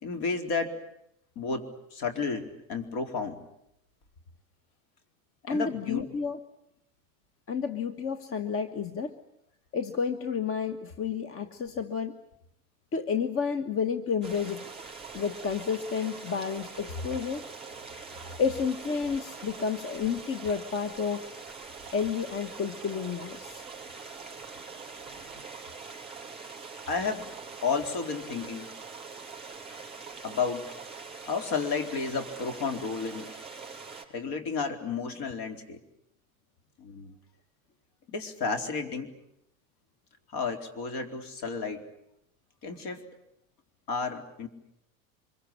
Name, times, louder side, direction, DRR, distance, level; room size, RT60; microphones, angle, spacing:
voice 1, 0.0-0.7 1.4-3.4 5.5-6.1 17.9-18.0 25.0-25.4 26.9-27.3 27.6-28.7 30.2-30.7 31.2-33.3 34.1-35.8 36.8-37.1 38.1-39.1 40.3-41.9 42.6-43.0 43.9-44.5, left 5 dB, 55° left, 6 dB, 4.2 m, -32 dB
voice 2, 5.5-6.4 7.5-9.2 9.7-12.2 12.9-14.7 15.1-17.5 18.4-21.3 21.9-23.6, left 6 dB, 30° left, 11 dB, 1.4 m, -31 dB
sound 1, 14.2-34.1, right 4 dB, 15° right, 5.7 m, -43 dB
25.5 x 23.0 x 8.6 m, 0.79 s
hypercardioid pair, 95°, 42 cm